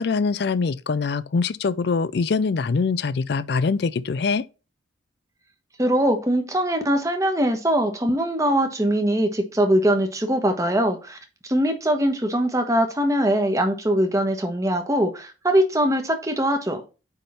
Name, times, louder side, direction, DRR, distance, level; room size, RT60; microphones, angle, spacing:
voice 1, 0.0-4.4, left 4 dB, 60° left, 0.4 m, -23 dB
voice 2, 5.8-11.2 11.5-16.8, right 1 dB, 15° right, 1.2 m, -22 dB
9.1 x 3.6 x 4.2 m
head